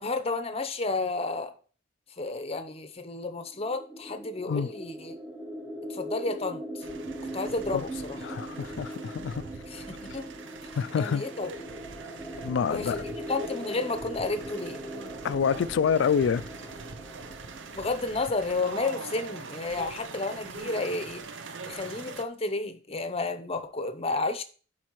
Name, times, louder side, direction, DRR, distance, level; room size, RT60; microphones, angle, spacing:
voice 1, 0.0-1.5 2.2-5.1 5.9-6.9 7.3-8.2 9.7-10.3 10.9-11.5 12.7-14.8 17.7-21.2 21.6-24.4, left 3 dB, 30° left, 0.7 m, -31 dB
sound 1, 3.5-19.1, equal, 10° right, 1.1 m, -41 dB
sound 2, 6.8-22.2, right 4 dB, 70° right, 0.7 m, -43 dB
voice 2, 8.2-9.4 10.8-11.2 12.4-13.0 15.2-16.4, left 7 dB, 65° left, 0.3 m, -27 dB
11.5 x 4.4 x 3.1 m
head